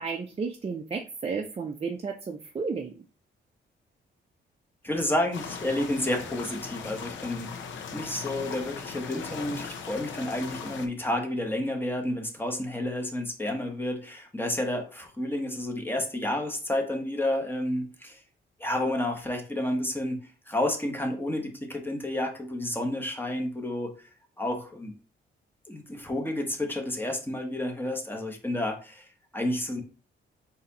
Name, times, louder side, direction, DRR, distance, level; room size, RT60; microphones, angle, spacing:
voice 1, 0.0-3.0, right 5 dB, 30° right, 3 dB, 0.5 m, -33 dB
voice 2, 4.8-7.5 7.9-18.2 18.6-20.2 20.5-23.9 24.4-24.9 25.7-29.1 29.3-29.8, left 1 dB, 10° left, 2 dB, 1.0 m, -30 dB
sound 1, 5.3-10.9, left 6 dB, 80° left, 0.7 m, -39 dB
4.0 x 2.8 x 4.0 m, 0.36 s
cardioid pair, 95°, 19 cm